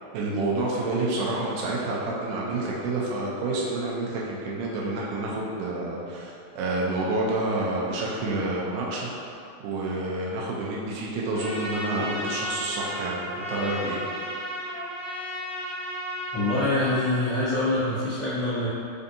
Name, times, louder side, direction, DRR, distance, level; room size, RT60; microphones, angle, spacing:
voice 1, 0.1-9.1 9.6-14.0, right 2 dB, 85° right, -4 dB, 2.0 m, -28 dB
Trumpet, 11.3-17.1, equal, 60° right, 2.0 m, -34 dB
voice 2, 16.3-18.7, left 2 dB, 75° left, -16 dB, 1.0 m, -25 dB
5.1 x 2.6 x 2.6 m, 2.6 s
omnidirectional pair, 3.5 m